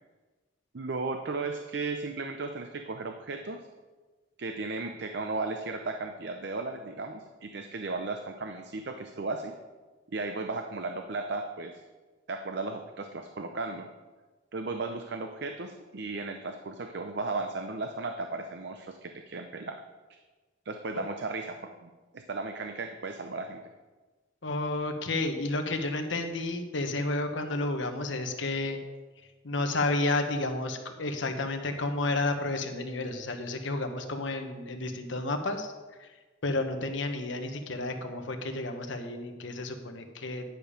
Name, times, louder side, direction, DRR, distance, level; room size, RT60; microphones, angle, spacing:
voice 1, 0.7-3.7 4.4-9.5 10.1-11.8 12.3-13.9 14.5-19.8 20.7-23.6, right 3 dB, 60° right, 6 dB, 0.6 m, -35 dB
voice 2, 24.4-28.8 29.4-35.7 36.0-36.1 36.4-40.4, left 2 dB, 75° left, 6 dB, 1.1 m, -31 dB
10.5 x 7.0 x 5.0 m, 1.3 s
head